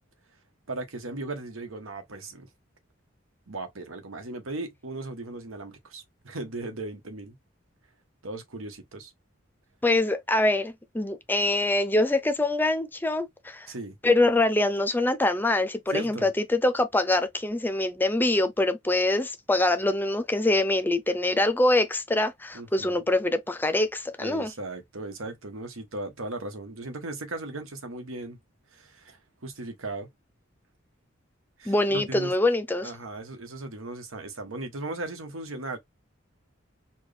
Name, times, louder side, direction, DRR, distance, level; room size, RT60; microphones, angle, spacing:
voice 1, 0.7-2.5 3.5-7.4 8.2-9.1 13.7-13.9 15.9-16.3 22.5-23.0 24.2-28.4 28.7-30.1 31.6-32.3 32.8-35.8, right 2 dB, 85° right, 1.2 m, -37 dB
voice 2, 9.8-13.7 14.0-24.5 31.7-32.9, left 2 dB, 10° left, 0.5 m, -24 dB
4.4 x 2.3 x 3.3 m
head